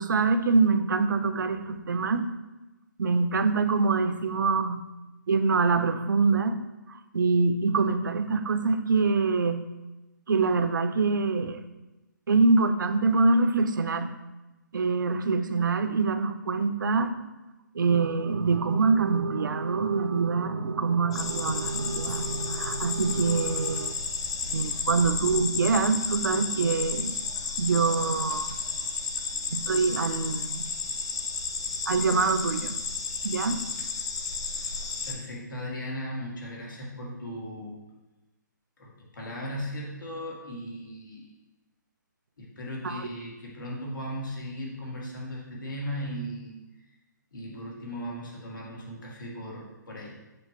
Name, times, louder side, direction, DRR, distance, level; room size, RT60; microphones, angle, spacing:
voice 1, 0.0-2.2 3.0-4.8 5.3-6.6 6.9-9.6 10.3-11.6 12.3-14.1 14.7-17.1 17.7-23.9 24.5-27.2 27.6-28.5 29.5-30.7 31.9-32.8 33.2-33.7 42.8-43.1, right 4 dB, 80° right, 10 dB, 0.6 m, -25 dB
sound 1, 21.1-35.1, left 4 dB, 15° left, 0.3 m, -32 dB
voice 2, 35.1-37.8 38.8-41.3 42.4-46.5 47.3-50.2, equal, 90° left, -3 dB, 2.2 m, -37 dB
7.8 x 6.2 x 3.0 m, 1.0 s
hypercardioid pair, 180°, 10 cm